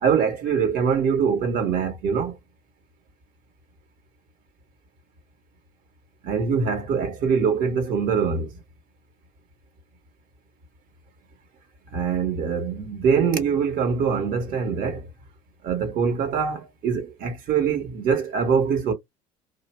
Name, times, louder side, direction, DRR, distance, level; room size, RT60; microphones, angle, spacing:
voice 1, 0.0-2.3 6.2-8.5 11.9-15.1 15.6-18.9, right 6 dB, 45° right, 1.0 m, -23 dB
2.6 x 2.0 x 3.2 m
figure-of-eight pair, 65°, 20 cm